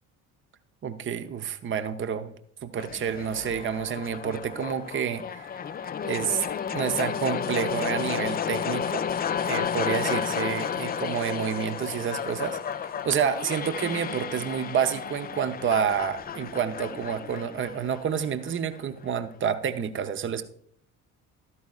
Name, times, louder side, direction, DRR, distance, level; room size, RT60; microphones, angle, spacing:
voice 1, 0.8-2.3 2.6-5.5 6.0-6.4 6.7-9.1 9.4-20.4, right 8 dB, 25° right, 11 dB, 0.7 m, -29 dB
sound 1, 2.8-18.8, left 8 dB, 20° left, 0.4 m, -32 dB
12.5 x 9.6 x 2.4 m, 0.64 s
figure-of-eight pair, 55°, 46 cm